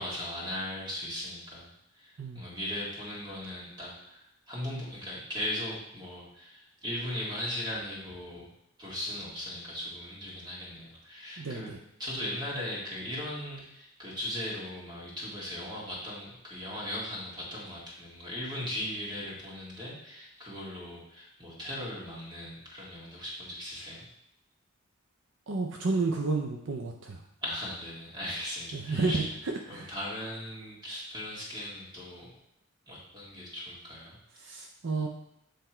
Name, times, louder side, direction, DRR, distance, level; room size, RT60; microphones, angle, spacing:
voice 1, 0.0-8.5 8.8-11.7 12.0-24.0 27.4-29.3 29.7-32.3 32.9-34.2, left 1 dB, 20° right, -5 dB, 2.0 m, -38 dB
voice 2, 11.4-11.8 25.5-27.2 28.7-29.2 29.7-29.9 34.4-35.1, right 3 dB, 65° right, 1 dB, 0.6 m, -31 dB
7.6 x 3.4 x 4.4 m, 0.79 s
head